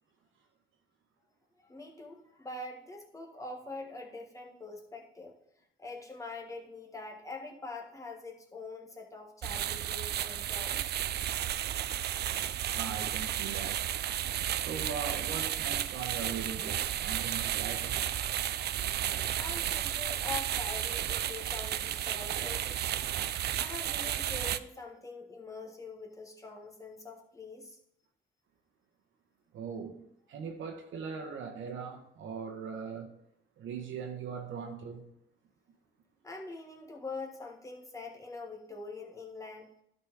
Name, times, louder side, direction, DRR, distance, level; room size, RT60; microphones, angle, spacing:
voice 1, 1.7-5.3 5.8-11.0 19.0-23.1 23.6-27.8 36.2-39.7, left 3 dB, 15° left, 1.5 m, -44 dB
sound 1, 9.4-24.6, right 11 dB, 55° right, 0.4 m, -33 dB
voice 2, 12.7-13.9 14.5-18.0 29.5-33.1 33.6-35.1, right 6 dB, 80° right, 1.1 m, -40 dB
11.5 x 4.2 x 4.7 m
cardioid pair, 90°, 20 cm